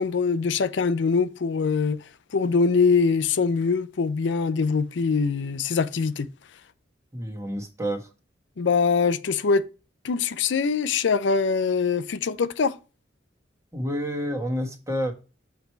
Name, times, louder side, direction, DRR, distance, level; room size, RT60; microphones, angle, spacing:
voice 1, 0.0-2.0 2.3-6.3 8.6-9.6 10.0-12.8, left 5 dB, 70° left, 0.5 m, -23 dB
voice 2, 7.1-8.1 13.7-15.1, equal, 15° right, 1.4 m, -29 dB
7.2 x 4.6 x 4.4 m
head